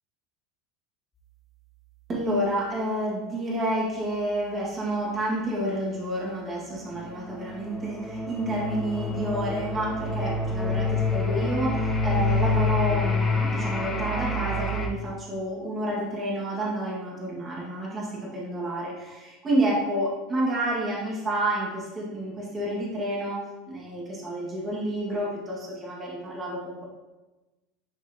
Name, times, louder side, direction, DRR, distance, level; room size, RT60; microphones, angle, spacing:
voice 1, 2.1-23.4 23.7-26.8, right 1 dB, 20° right, -5 dB, 1.4 m, -29 dB
sound 1, 7.3-14.9, left 2 dB, 10° left, 0.7 m, -27 dB
10.0 x 3.8 x 2.6 m, 1.1 s
supercardioid pair, 165°, 0 cm